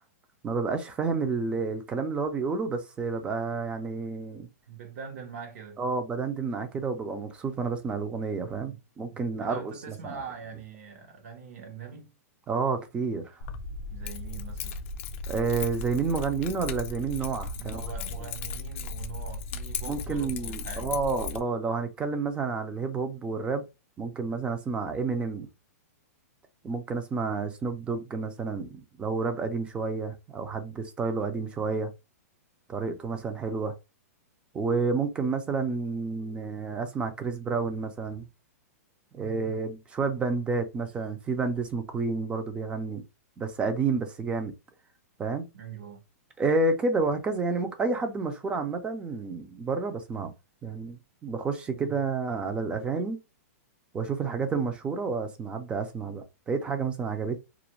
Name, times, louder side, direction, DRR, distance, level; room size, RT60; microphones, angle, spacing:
voice 1, 0.4-4.5 5.8-10.2 12.5-13.4 15.3-17.8 19.9-23.6 24.0-25.5 26.6-31.9 32.7-33.7 34.5-38.3 39.1-43.0 43.4-44.5 45.2-45.5 46.4-50.3 50.6-53.2 53.9-57.4, right 4 dB, 10° right, 0.4 m, -30 dB
voice 2, 4.7-5.8 6.7-6.9 8.6-8.8 9.1-12.1 13.9-14.8 17.6-21.0 39.2-39.6 45.5-46.0 51.7-52.0, right 6 dB, 60° right, 1.0 m, -43 dB
Keys jangling, 13.4-21.4, left 4 dB, 50° left, 0.4 m, -36 dB
2.4 x 2.1 x 3.0 m
hypercardioid pair, 150°, 9 cm